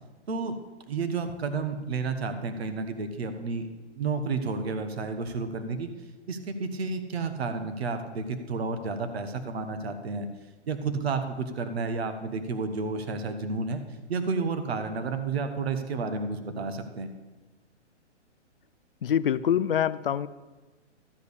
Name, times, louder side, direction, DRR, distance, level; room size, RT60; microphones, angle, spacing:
voice 1, 0.9-5.9 6.3-10.3 10.7-13.8 14.1-17.1, right 4 dB, 60° right, 8 dB, 1.3 m, -31 dB
voice 2, 19.0-20.3, left 9 dB, 50° left, 15 dB, 0.5 m, -25 dB
13.0 x 5.1 x 8.3 m, 1.2 s
hypercardioid pair, 170°, 36 cm